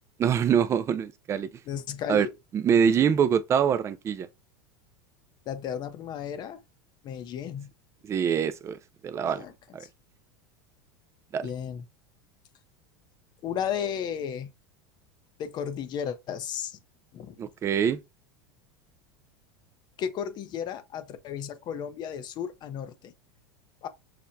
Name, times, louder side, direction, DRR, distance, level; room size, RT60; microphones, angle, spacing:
voice 1, 0.2-1.5 2.1-2.3 2.5-4.3 8.0-9.5 9.7-9.8 11.3-11.5 17.4-18.0, right 7 dB, 25° right, 0.4 m, -24 dB
voice 2, 1.7-2.3 5.5-6.6 7.0-7.7 9.3-9.5 11.4-11.8 13.4-14.5 15.4-16.8 17.1-17.4 20.0-23.1 23.8-23.9, left 8 dB, 40° left, 0.6 m, -34 dB
5.8 x 2.1 x 2.5 m
supercardioid pair, 120°, 11 cm